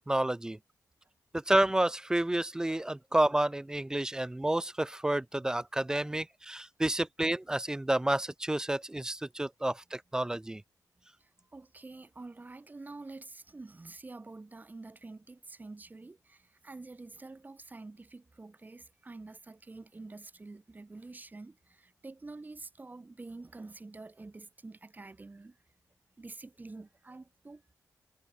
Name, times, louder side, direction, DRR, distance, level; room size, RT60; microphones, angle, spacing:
voice 1, 0.1-0.6 1.5-10.6, right 1 dB, 10° right, 0.3 m, -30 dB
voice 2, 11.2-25.5 26.2-27.6, right 3 dB, 25° right, 1.3 m, -47 dB
cardioid pair, 85°, 7 cm